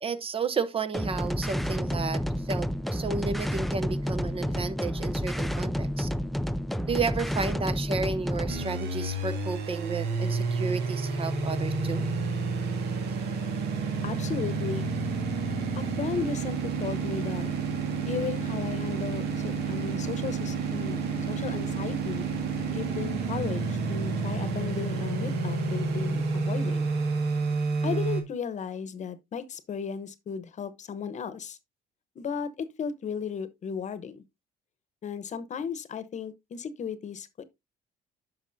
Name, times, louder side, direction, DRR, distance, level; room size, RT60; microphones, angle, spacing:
voice 1, 0.0-6.1 6.9-12.1, right 4 dB, 35° right, 0.7 m, -32 dB
sound 1, 0.9-8.6, equal, ahead, 0.4 m, -30 dB
sound 2, 8.5-28.2, right 4 dB, 75° right, 1.8 m, -30 dB
voice 2, 13.7-14.9 15.8-17.5 18.1-21.0 21.3-22.3 22.7-26.9 27.8-31.6 32.1-34.2 35.0-37.4, left 6 dB, 45° left, 1.0 m, -35 dB
10.0 x 5.9 x 2.7 m
cardioid pair, 110°, 17 cm